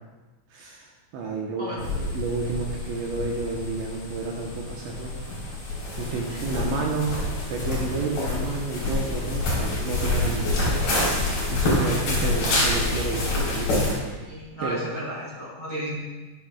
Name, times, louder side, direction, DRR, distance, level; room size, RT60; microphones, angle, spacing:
voice 1, 0.5-5.1 6.0-7.2 7.5-10.8 11.5-14.1 14.6-14.9, right 3 dB, 75° right, -2 dB, 3.1 m, -30 dB
sound 1, 1.8-13.9, left 2 dB, 50° left, 5.4 m, -27 dB
voice 2, 14.2-16.0, equal, 5° left, -8 dB, 3.3 m, -34 dB
16.0 x 11.5 x 2.4 m, 1.2 s
omnidirectional pair, 5.6 m